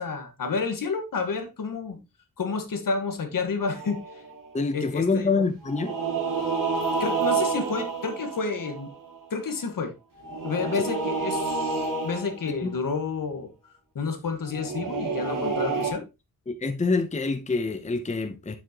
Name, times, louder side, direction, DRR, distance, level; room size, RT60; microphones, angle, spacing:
voice 1, 0.0-2.0 2.4-4.2 4.7-5.4 7.0-8.9 9.3-9.9 10.4-13.5 14.0-16.0, left 4 dB, 65° left, 1.6 m, -30 dB
sound 1, 3.6-4.5 5.6-9.2 10.2-12.6 14.5-15.9, right 4 dB, 65° right, 2.4 m, -29 dB
voice 2, 4.5-5.9 10.8-10.9 12.6-12.8 16.5-18.6, left 3 dB, 20° left, 0.7 m, -26 dB
7.5 x 6.3 x 2.9 m
wide cardioid pair, 90°, 36 cm